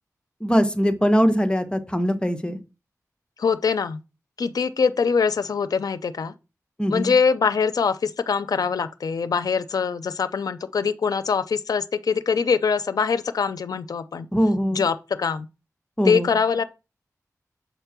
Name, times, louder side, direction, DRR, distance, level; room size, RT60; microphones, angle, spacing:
voice 1, 0.4-2.6 6.8-7.1 14.3-14.8 16.0-16.3, equal, 15° left, 1.4 m, -21 dB
voice 2, 3.4-4.0 4.4-6.3 6.9-14.3 14.7-15.5 16.0-16.6, left 5 dB, 85° left, 0.5 m, -23 dB
7.2 x 4.5 x 5.9 m
wide cardioid pair, 60°, 6 cm